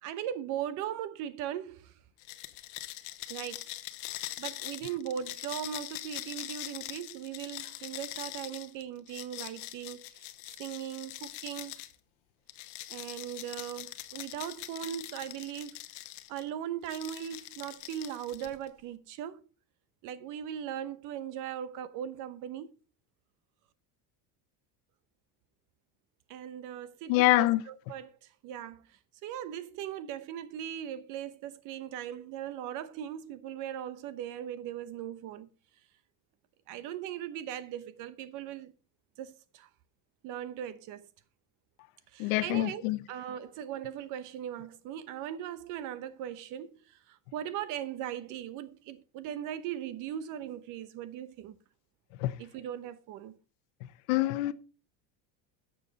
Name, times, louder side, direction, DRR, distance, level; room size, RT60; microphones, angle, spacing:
voice 1, 0.0-2.0 3.3-3.8 4.0-10.3 10.6-11.8 12.9-15.8 16.3-19.5 20.0-22.7 26.3-35.5 36.7-38.7 39.2-39.7 40.2-41.1 42.1-51.6 52.4-53.4, right 10 dB, 50° right, 0.9 m, -39 dB
sound 1, 2.2-11.9 12.5-16.4 16.8-18.7, left 17 dB, 70° left, 1.0 m, -43 dB
voice 2, 27.1-27.6 42.2-43.0 52.2-52.3 54.1-54.5, left 18 dB, 90° left, 0.9 m, -25 dB
11.5 x 7.3 x 4.0 m
cardioid pair, 170°, 40 cm